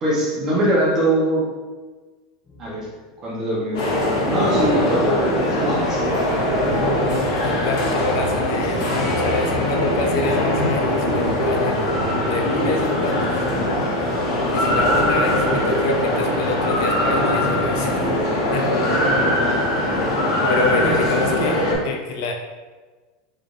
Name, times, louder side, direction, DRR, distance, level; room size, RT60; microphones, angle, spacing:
voice 1, 0.0-1.4 2.6-2.9 3.2-6.3 10.3-10.7 19.4-19.6, right 1 dB, 25° right, -5 dB, 0.9 m, -22 dB
sound 1, 2.4-20.8, left 1 dB, 15° left, 0.8 m, -40 dB
sound 2, 3.7-21.8, left 1 dB, 80° left, 1.2 m, -21 dB
voice 2, 7.0-13.4 14.5-18.1 18.5-18.8 20.0-20.1 20.5-22.3, left 3 dB, 60° left, 2 dB, 0.4 m, -27 dB
3.4 x 3.3 x 2.6 m, 1.3 s
supercardioid pair, 175°, 2 cm